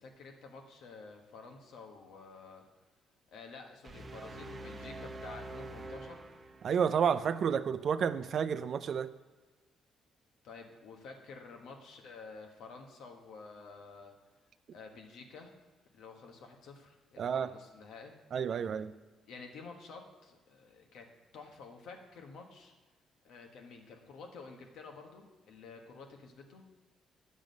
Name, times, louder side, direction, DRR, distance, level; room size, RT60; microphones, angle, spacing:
voice 1, 0.0-2.6 3.3-6.2 10.4-14.1 14.7-15.5 15.9-18.1 18.7-18.8 19.3-21.1 21.3-22.7 23.2-26.6, left 4 dB, 80° left, 3 dB, 1.2 m, -50 dB
sound 1, 3.8-7.0, right 2 dB, 35° right, 0.7 m, -45 dB
voice 2, 6.6-9.1 17.2-17.5 18.3-18.9, right 7 dB, 60° right, 13 dB, 0.4 m, -30 dB
9.2 x 6.2 x 5.2 m, 1.2 s
cardioid pair, 90°, 0 cm